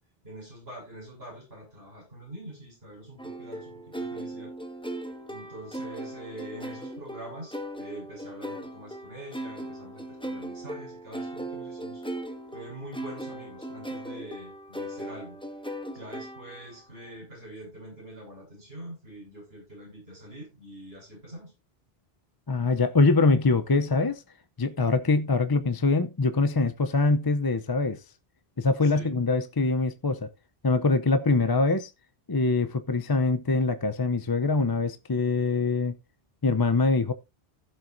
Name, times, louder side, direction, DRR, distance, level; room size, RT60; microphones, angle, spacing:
voice 1, 0.2-4.5 5.3-12.0 12.5-15.4 15.9-21.5 28.8-29.1, right 1 dB, 75° right, 6.7 m, -44 dB
sound 1, 3.2-16.8, right 1 dB, 5° left, 1.4 m, -38 dB
voice 2, 22.5-24.2 24.6-28.0 28.6-30.3 30.6-31.9 32.3-36.0 36.4-37.1, left 3 dB, 25° left, 0.6 m, -24 dB
15.5 x 7.4 x 2.6 m
omnidirectional pair, 1.0 m